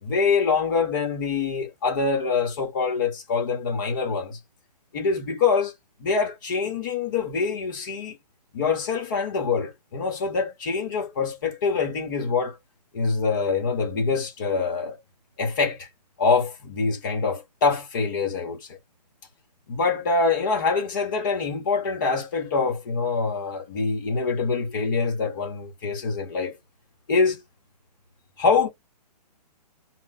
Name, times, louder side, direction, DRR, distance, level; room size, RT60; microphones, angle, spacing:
voice 1, 0.0-4.4 4.9-5.7 6.0-8.2 8.5-12.6 12.9-15.0 15.4-15.9 16.2-18.8 19.7-26.6 27.1-27.4 28.4-28.7, left 4 dB, 30° left, 1.0 m, -25 dB
2.5 x 2.1 x 3.9 m
hypercardioid pair, 170°, 21 cm